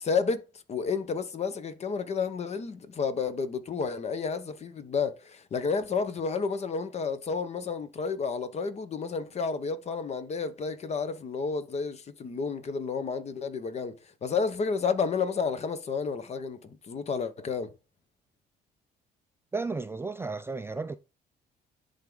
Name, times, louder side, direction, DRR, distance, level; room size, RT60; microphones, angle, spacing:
voice 1, 0.0-13.9 14.2-17.7, left 5 dB, 40° left, 1.0 m, -31 dB
voice 2, 19.5-21.0, right 3 dB, 15° right, 0.4 m, -33 dB
10.5 x 3.6 x 3.8 m
cardioid pair, 110°, 17 cm